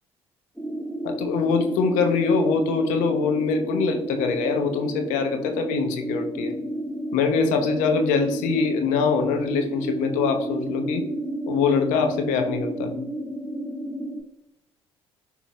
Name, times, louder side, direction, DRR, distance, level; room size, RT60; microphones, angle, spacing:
sound 1, 0.6-14.2, right 1 dB, ahead, 1.5 m, -31 dB
voice 1, 1.0-6.6 7.1-11.0 11.5-12.9, left 5 dB, 70° left, 5 dB, 1.0 m, -23 dB
11.0 x 4.4 x 2.3 m, 0.92 s
hypercardioid pair, 50°, 13 cm